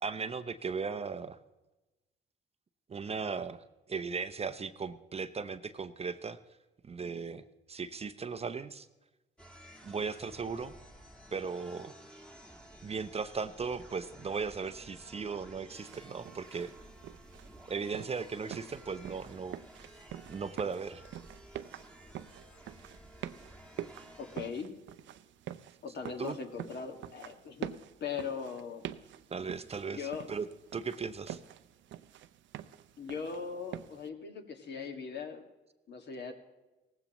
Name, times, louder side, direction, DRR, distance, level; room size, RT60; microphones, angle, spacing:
voice 1, 0.0-1.4 2.9-6.4 6.8-8.9 9.8-10.7 11.3-11.9 12.8-16.7 17.7-19.6 20.3-21.0 26.2-26.4 29.3-30.5 30.7-31.4, right 5 dB, 30° right, 11 dB, 0.6 m, -37 dB
sound 1, 9.4-24.5, right 1 dB, 5° left, 1.5 m, -54 dB
sound 2, 15.7-34.1, right 11 dB, 70° right, 0.6 m, -47 dB
voice 2, 24.2-24.7 25.8-27.7 28.0-28.8 29.9-30.3 33.0-35.5 35.9-36.3, left 6 dB, 60° left, 5 dB, 1.8 m, -39 dB
18.0 x 15.5 x 3.0 m, 1.1 s
cardioid pair, 90°, 20 cm